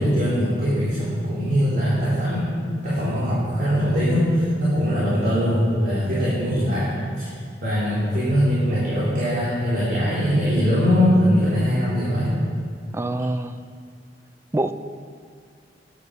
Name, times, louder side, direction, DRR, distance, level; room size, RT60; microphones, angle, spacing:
voice 1, 0.0-7.3 7.6-12.4, equal, 50° right, -10 dB, 3.8 m, -21 dB
voice 2, 12.9-13.5 14.5-14.7, right 1 dB, 15° right, 10 dB, 0.4 m, -25 dB
13.5 x 10.0 x 5.4 m, 2.1 s
head